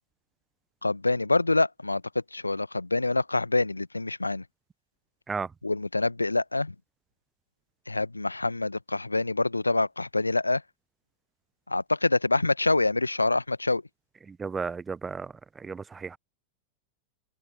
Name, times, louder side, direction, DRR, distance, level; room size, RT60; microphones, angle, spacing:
voice 1, 0.8-2.0 2.3-4.4 5.6-6.7 7.9-10.6 11.7-13.8, left 2 dB, 80° left, 1.1 m, -26 dB
voice 2, 14.3-16.2, right 5 dB, 15° right, 0.6 m, -34 dB
open air
figure-of-eight pair, 90°, 0 cm